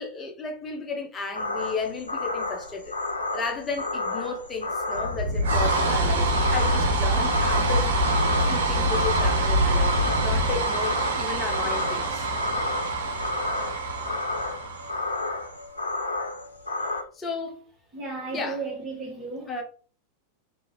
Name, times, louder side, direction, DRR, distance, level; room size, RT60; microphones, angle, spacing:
voice 1, 0.0-3.0 3.3-12.3 17.1-17.7 18.3-18.6 19.5-19.6, left 4 dB, 20° left, 0.7 m, -34 dB
sound 1, 1.3-17.0, left 2 dB, 75° left, 0.6 m, -32 dB
sound 2, 4.9-15.4, right 1 dB, 60° right, 0.8 m, -25 dB
voice 2, 17.9-19.5, right 4 dB, 20° right, 1.3 m, -34 dB
2.7 x 2.6 x 2.9 m
figure-of-eight pair, 90°, 0 cm